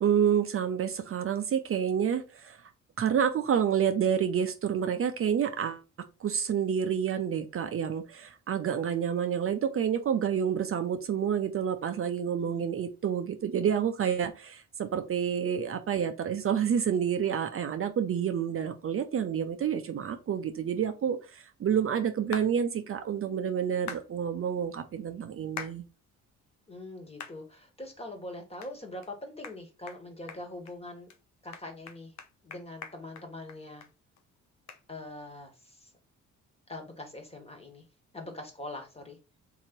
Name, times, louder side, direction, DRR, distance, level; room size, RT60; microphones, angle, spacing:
voice 1, 0.0-2.6 3.0-5.8 6.2-25.8, right 8 dB, 45° right, 0.6 m, -29 dB
voice 2, 12.3-12.7 26.7-31.1 31.4-32.1 32.4-33.8 34.9-35.9 36.7-37.8 38.1-39.2, left 1 dB, 20° left, 1.5 m, -43 dB
sound 1, 22.3-22.5 23.9-24.1 25.6-25.8 26.3-26.4 27.2-27.4 27.8-27.9 28.6-28.7 29.0-29.1 29.4-29.6 29.9-30.0 30.3-30.7 31.1-31.2 31.5-33.9 34.2-34.3 34.7-34.8, left 7 dB, 65° left, 0.8 m, -42 dB
3.9 x 2.9 x 4.4 m
cardioid pair, 90°, 30 cm